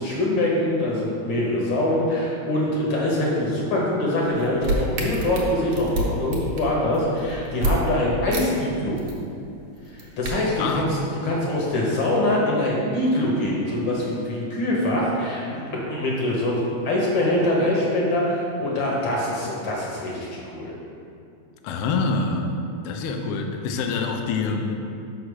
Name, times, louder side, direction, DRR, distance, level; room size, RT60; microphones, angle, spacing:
voice 1, 0.0-9.0 9.9-10.9 11.2-20.7, left 1 dB, 60° left, -4 dB, 1.3 m, -24 dB
sound 1, 4.2-7.7 8.3-8.4 8.7-9.2 9.8-10.3, right 1 dB, 55° right, 1.5 m, -27 dB
voice 2, 10.6-10.9 21.6-22.6 22.8-24.8, left 4 dB, 85° left, 4 dB, 1.3 m, -26 dB
5.6 x 4.8 x 6.3 m, 2.5 s
omnidirectional pair, 3.3 m